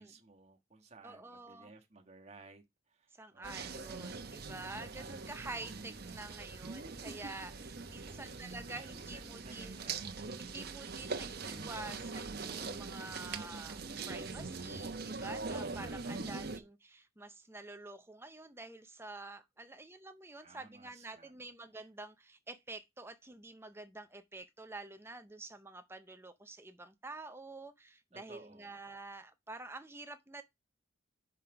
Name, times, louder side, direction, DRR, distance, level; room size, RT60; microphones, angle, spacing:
voice 1, 0.0-4.2 8.0-10.1 16.0-16.4 20.4-21.3 28.1-28.8, right 3 dB, 30° right, 1.4 m, -58 dB
voice 2, 1.0-1.7 3.1-9.9 10.4-13.8 14.1-30.4, right 2 dB, 10° right, 0.6 m, -48 dB
sound 1, 3.4-16.6, right 4 dB, 50° right, 0.9 m, -42 dB
5.9 x 4.9 x 5.8 m
head